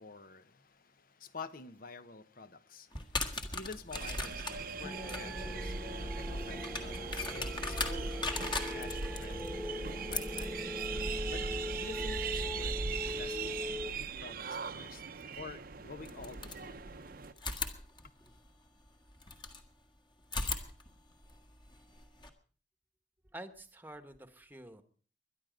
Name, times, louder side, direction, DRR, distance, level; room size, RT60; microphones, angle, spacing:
voice 1, 0.0-10.7 11.3-11.4 11.8-12.8 13.2-15.0 15.4-16.9, left 4 dB, 50° left, 1.1 m, -49 dB
sound 1, 2.9-13.7 15.2-15.3 16.0-17.0 17.4-19.6 20.2-22.3, left 3 dB, 25° left, 1.7 m, -41 dB
sound 2, 3.9-17.3, right 4 dB, 55° right, 0.8 m, -39 dB
sound 3, 4.8-13.9, left 2 dB, 10° left, 1.5 m, -41 dB
voice 2, 23.3-24.8, right 1 dB, 10° right, 1.2 m, -48 dB
22.5 x 11.0 x 5.1 m
head